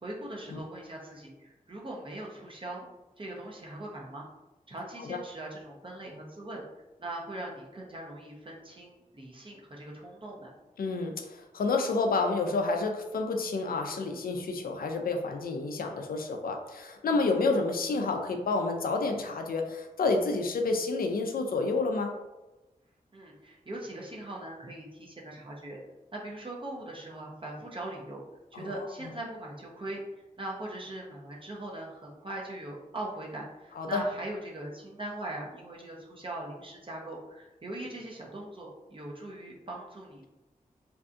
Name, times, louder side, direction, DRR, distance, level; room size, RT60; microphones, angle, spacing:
voice 1, 0.0-2.8 3.2-4.3 4.7-6.6 7.0-10.5 23.1-25.8 26.1-28.2 28.5-30.0 30.4-40.3, right 1 dB, 35° right, -3 dB, 0.6 m, -40 dB
voice 2, 10.8-22.2 28.5-28.7 33.8-34.0, left 3 dB, 70° left, 4 dB, 0.4 m, -29 dB
2.6 x 2.3 x 2.5 m, 1.0 s
cardioid pair, 45°, 15 cm